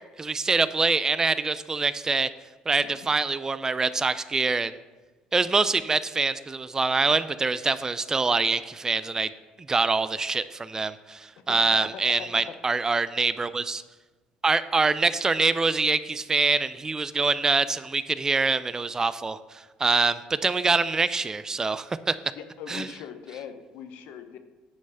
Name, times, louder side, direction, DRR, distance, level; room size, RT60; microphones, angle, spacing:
voice 1, 0.2-2.3 2.7-4.7 5.3-9.3 9.7-13.8 14.4-19.4 19.8-22.2 22.7-22.9, right 4 dB, 20° right, 14 dB, 0.4 m, -25 dB
voice 2, 2.8-3.1 11.4-12.5 22.4-24.4, left 8 dB, 80° left, 8 dB, 0.8 m, -41 dB
9.6 x 3.2 x 6.8 m, 1.2 s
cardioid pair, 105°, 3 cm